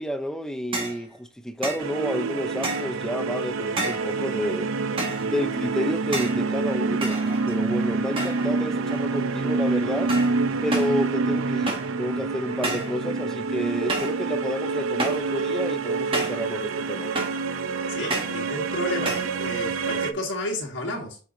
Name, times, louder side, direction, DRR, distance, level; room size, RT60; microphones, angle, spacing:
voice 1, 0.0-4.7 5.2-7.2 7.5-10.1 10.6-17.1, equal, 5° left, 0.5 m, -30 dB
sound 1, 0.7-1.0 1.6-1.9 2.6-3.0 3.8-4.1 5.0-5.3 6.1-6.4 7.0-7.7 8.2-8.5 8.9-9.3 10.1-10.4 10.7-11.0 11.7-12.0 12.6-13.0 13.9-14.2 15.0-15.3 16.1-16.5 17.1-17.5 18.1-18.4 19.0-19.3, right 2 dB, 25° right, 1.5 m, -30 dB
sound 2, 1.8-20.1, right 4 dB, 85° right, 0.6 m, -27 dB
voice 2, 17.9-21.2, left 1 dB, 60° left, 1.7 m, -31 dB
8.1 x 4.7 x 2.6 m
head